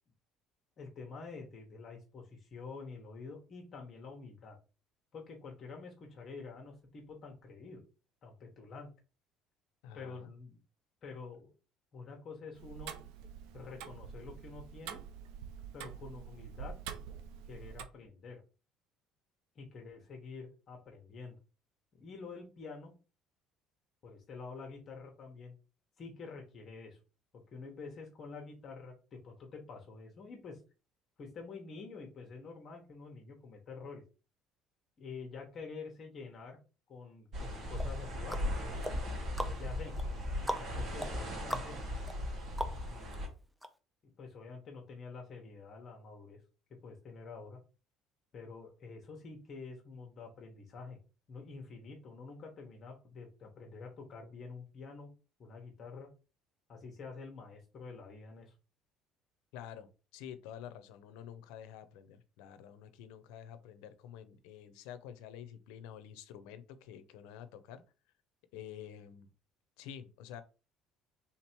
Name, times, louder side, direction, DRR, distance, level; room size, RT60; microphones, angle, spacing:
voice 1, 0.8-4.6 5.1-7.8 8.2-8.9 9.9-10.6 11.0-11.5 11.9-12.9 13.5-15.0 15.7-16.7 17.5-18.4 19.5-21.4 21.9-22.9 24.0-25.5 26.0-27.0 27.3-30.6 31.2-34.0 35.0-36.6 36.9-38.5 39.5-39.9 40.6-41.8 42.4-43.3 44.2-46.4 46.8-47.6 48.3-51.0 51.3-55.1 55.4-56.1 56.7-58.5, left 4 dB, 40° left, 1 dB, 1.1 m, -48 dB
voice 2, 9.8-10.3 59.5-67.8 68.5-69.3 69.8-70.4, left 9 dB, 90° left, 12 dB, 0.6 m, -49 dB
Tick-tock, 12.5-17.8, right 8 dB, 90° right, 0.5 m, -46 dB
sound 1, 37.3-43.3, left 1 dB, 50° right, 1.8 m, -38 dB
sound 2, 37.8-43.2 43.6-43.7, equal, 5° right, 0.5 m, -42 dB
3.7 x 2.9 x 4.4 m, 0.33 s
cardioid pair, 125°, 0 cm